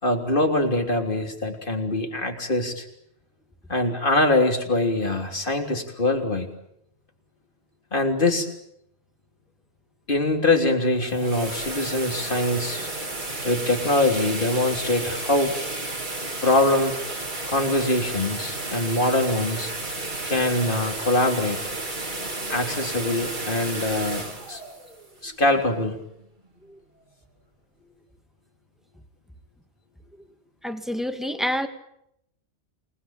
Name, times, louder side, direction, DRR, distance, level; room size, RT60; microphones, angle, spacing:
voice 1, 0.0-2.9 3.7-6.5 7.9-8.5 10.1-12.9 13.4-15.5 16.4-17.0 17.5-19.7 20.2-21.6 22.5-24.6 25.2-26.0, left 2 dB, 55° left, 4 dB, 3.7 m, -23 dB
sound 1, 10.9-25.8, right 2 dB, 45° right, 2.8 m, -32 dB
voice 2, 30.6-31.7, equal, ahead, 6 dB, 2.3 m, -27 dB
29.0 x 20.0 x 9.0 m, 0.78 s
omnidirectional pair, 1.1 m